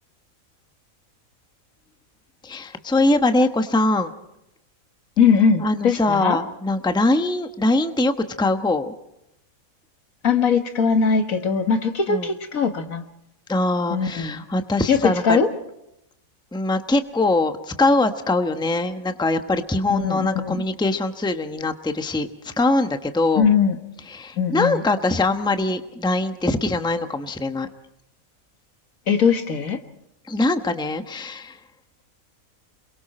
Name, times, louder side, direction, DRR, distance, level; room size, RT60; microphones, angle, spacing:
voice 1, 2.4-4.1 5.6-8.1 8.4-8.9 12.1-12.3 13.5-15.4 16.5-23.5 24.1-27.7 30.3-31.6, left 2 dB, 5° left, 8 dB, 1.0 m, -22 dB
voice 2, 5.2-6.4 10.2-13.0 13.9-14.4 14.9-15.5 19.9-20.6 23.4-23.8 24.4-24.8 29.1-29.8, left 6 dB, 75° left, 7 dB, 2.0 m, -20 dB
28.5 x 22.0 x 4.3 m, 0.84 s
omnidirectional pair, 1.5 m